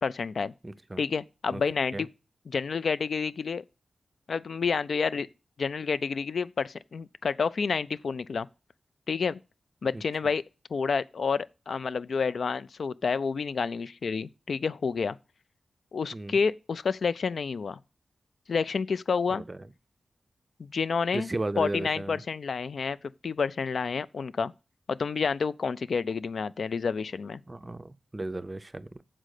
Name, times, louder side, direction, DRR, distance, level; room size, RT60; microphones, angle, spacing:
voice 1, 0.0-0.5 1.0-2.1 2.5-3.6 4.3-5.3 5.6-8.5 9.1-9.4 9.8-10.4 10.7-15.2 15.9-17.8 18.5-19.4 20.6-21.3 21.6-23.0 23.2-24.5 24.9-27.4, left 5 dB, 70° left, 0.3 m, -29 dB
voice 2, 0.6-1.0 1.5-1.6 1.9-2.1 9.9-10.0 16.1-16.3 19.3-19.6 21.1-22.2 27.5-29.0, right 2 dB, 20° right, 0.4 m, -35 dB
7.5 x 5.1 x 6.4 m
wide cardioid pair, 145°, 0 cm